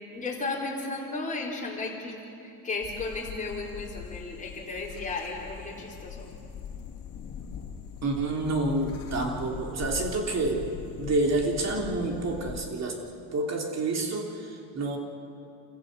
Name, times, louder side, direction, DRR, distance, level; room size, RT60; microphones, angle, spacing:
voice 1, 0.1-6.3, left 3 dB, 20° left, -3 dB, 4.6 m, -34 dB
sound 1, 2.8-12.7, left 7 dB, 50° left, 2.7 m, -41 dB
voice 2, 8.0-10.7 11.0-13.0 13.3-15.0, right 2 dB, 40° right, 2 dB, 3.1 m, -28 dB
27.5 x 15.0 x 8.1 m, 2.8 s
cardioid pair, 125°, 42 cm